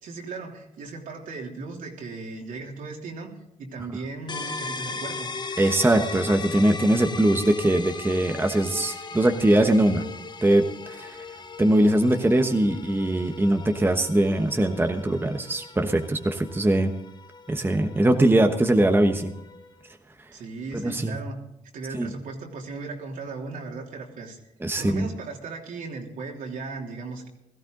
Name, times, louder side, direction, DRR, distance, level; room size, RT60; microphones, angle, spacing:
voice 1, 0.0-3.3 3.6-5.3 20.3-21.4 21.7-24.4 24.7-27.3, right 3 dB, 75° right, 0 dB, 3.2 m, -37 dB
sound 1, 4.3-19.8, left 4 dB, 30° left, 1.0 m, -38 dB
voice 2, 5.6-10.1 10.4-11.2 11.6-16.9 17.5-19.3 20.7-21.2 21.9-22.1 24.6-25.1, right 1 dB, 15° right, 5 dB, 1.2 m, -21 dB
17.0 x 14.0 x 3.9 m, 0.86 s
cardioid pair, 75°, 14 cm